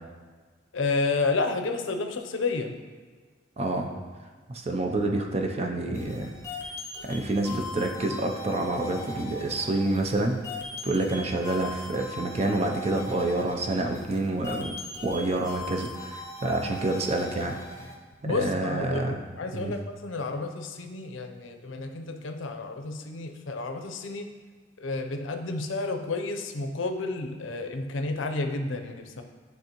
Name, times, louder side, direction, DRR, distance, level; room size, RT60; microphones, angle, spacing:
voice 1, 0.7-2.8 18.2-24.3 24.8-29.2, left 3 dB, 75° left, 5 dB, 0.6 m, -31 dB
voice 2, 3.6-3.9 4.5-6.3 7.1-10.4 10.8-17.6 18.3-19.2 19.5-19.7, right 2 dB, 35° right, 2 dB, 0.5 m, -28 dB
sound 1, 5.9-17.9, left 2 dB, 15° left, 0.7 m, -40 dB
10.5 x 3.5 x 2.9 m, 1.5 s
head